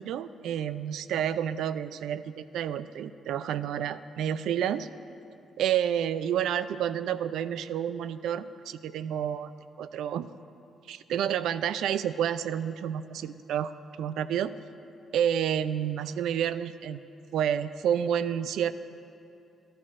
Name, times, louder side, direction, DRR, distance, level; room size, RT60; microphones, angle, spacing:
voice 1, 0.0-4.9 5.6-9.5 9.8-10.3 10.9-14.5 15.1-17.0 17.3-18.7, right 9 dB, 80° right, 14 dB, 0.3 m, -29 dB
17.5 x 12.5 x 2.5 m, 2.7 s
cardioid pair, 155°, 0 cm